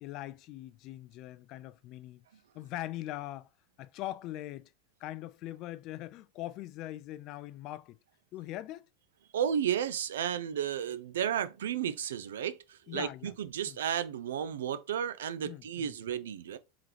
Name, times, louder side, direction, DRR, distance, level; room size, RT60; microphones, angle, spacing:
voice 1, 0.0-2.2 2.5-3.5 3.8-4.7 5.0-8.0 8.3-8.9 12.9-13.3 13.7-13.8 15.4-15.9, left 15 dB, 50° left, 0.3 m, -41 dB
voice 2, 9.3-16.6, right 9 dB, 85° right, 0.4 m, -33 dB
3.7 x 2.9 x 3.3 m
hypercardioid pair, 100°, 0 cm